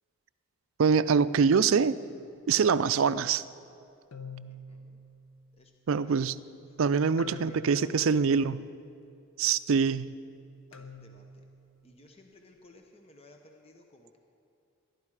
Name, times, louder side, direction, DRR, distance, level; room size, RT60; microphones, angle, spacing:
voice 1, 0.8-1.9 2.5-3.4 5.9-6.4 6.8-8.7 9.4-10.1, right 6 dB, 70° right, 15 dB, 0.4 m, -24 dB
sound 1, 2.1-2.4 4.1-6.0 7.2-8.9 10.7-12.2, left 3 dB, 75° left, 0.9 m, -48 dB
voice 2, 4.4-5.0 5.6-5.7 6.0-6.1 6.9-7.9 8.2-8.6 10.7-11.4 11.8-14.2, left 1 dB, 30° left, 3 dB, 0.9 m, -55 dB
21.0 x 12.0 x 4.9 m, 2.6 s
head